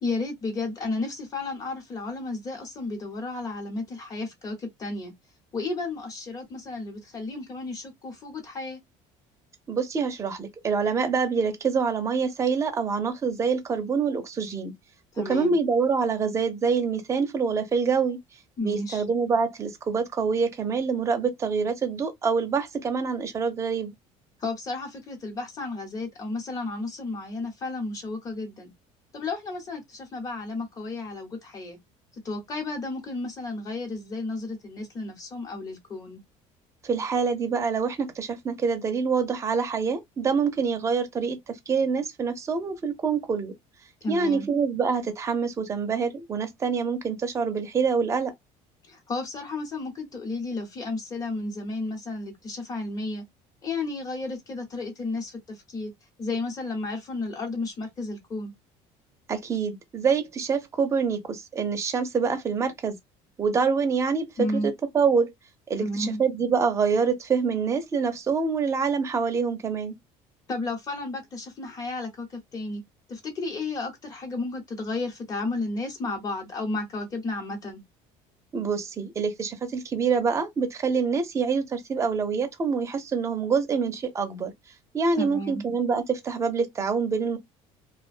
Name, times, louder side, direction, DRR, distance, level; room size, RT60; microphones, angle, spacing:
voice 1, 0.0-5.1 5.5-8.8 15.1-15.6 18.6-19.0 24.4-28.7 29.1-31.8 32.2-36.2 44.0-44.5 48.9-53.2 53.6-55.9 56.2-58.5 64.4-64.7 65.8-66.2 70.5-72.8 73.1-77.8 85.2-85.6, left 2 dB, 25° left, 1.0 m, -33 dB
voice 2, 9.7-14.7 15.3-18.2 18.6-23.9 36.8-43.5 44.1-48.3 59.3-62.9 63.4-64.3 64.6-65.3 65.7-69.9 78.5-84.5 84.9-87.4, right 5 dB, 20° right, 0.6 m, -26 dB
2.4 x 2.1 x 2.5 m
cardioid pair, 145°, 13 cm